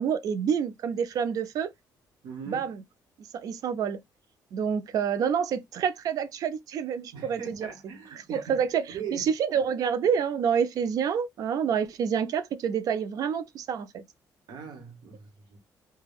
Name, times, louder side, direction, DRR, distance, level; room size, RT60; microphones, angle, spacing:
voice 1, 0.0-1.7 2.5-2.8 3.2-4.0 4.5-7.7 8.1-14.0, right 7 dB, 55° right, 0.4 m, -28 dB
voice 2, 2.2-2.6 7.1-8.4 8.9-9.3 14.5-15.6, right 6 dB, 80° right, 1.0 m, -40 dB
3.3 x 2.2 x 2.3 m
cardioid pair, 165°, 7 cm